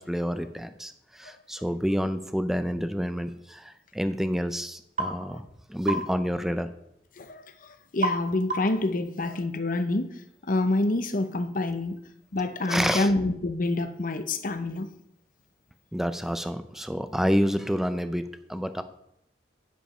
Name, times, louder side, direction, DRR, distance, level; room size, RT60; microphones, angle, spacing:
voice 1, 0.0-5.4 5.7-6.7 12.7-13.1 15.9-18.8, equal, ahead, 10 dB, 0.5 m, -28 dB
sound 1, 5.0-5.2 5.9-6.1 8.0-8.2 8.5-8.8, right 2 dB, 45° right, 2.3 m, -28 dB
voice 2, 7.9-10.1 10.5-12.0 12.3-14.9, left 2 dB, 50° left, 9 dB, 0.8 m, -27 dB
10.0 x 5.1 x 5.5 m, 0.77 s
head